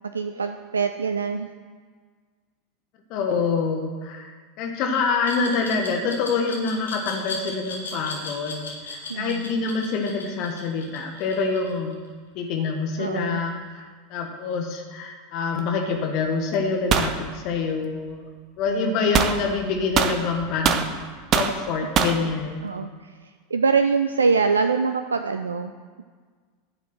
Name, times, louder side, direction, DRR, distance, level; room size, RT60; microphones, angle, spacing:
voice 1, 0.1-1.5 9.1-9.5 13.0-13.4 18.7-19.0 22.6-22.9 23.5-25.7, right 5 dB, 75° right, 8 dB, 0.4 m, -24 dB
voice 2, 3.1-4.3 4.6-11.9 12.3-13.8 14.1-18.2 18.6-21.0 21.3-22.9, left 4 dB, 45° left, 2 dB, 1.5 m, -26 dB
Glass, 5.2-12.1, left 3 dB, 75° left, 2.1 m, -37 dB
sound 1, 16.9-17.1 19.1-19.4 19.9-20.9 21.3-21.6 21.9-22.2, right 7 dB, 35° right, 0.9 m, -21 dB
11.0 x 6.0 x 7.7 m, 1.5 s
figure-of-eight pair, 85°, 0 cm